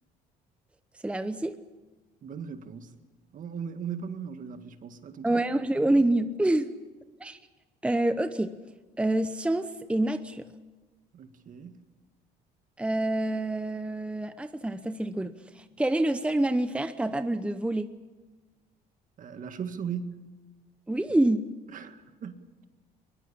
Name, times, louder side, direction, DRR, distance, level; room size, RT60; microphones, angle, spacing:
voice 1, 1.0-1.6 5.2-6.7 7.2-7.4 7.8-8.6 9.0-10.5 12.8-17.9 20.9-21.5, right 1 dB, 5° right, 0.9 m, -27 dB
voice 2, 2.2-2.9 3.3-5.4 11.1-11.8 19.2-20.3 21.7-22.5, right 7 dB, 50° right, 2.0 m, -38 dB
22.0 x 22.0 x 8.6 m
cardioid pair, 110°, 17 cm